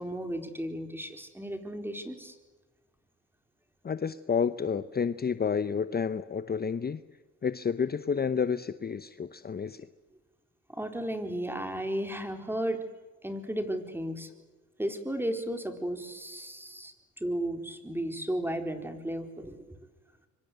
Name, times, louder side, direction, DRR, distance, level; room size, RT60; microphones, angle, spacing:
voice 1, 0.0-2.4 10.7-12.8 13.2-14.3 14.8-19.8, right 1 dB, 5° right, 6 dB, 4.1 m, -34 dB
voice 2, 3.8-7.0 7.4-9.9, left 6 dB, 30° left, 12 dB, 0.9 m, -30 dB
26.0 x 24.5 x 8.1 m, 1.2 s
cardioid pair, 90°, 30 cm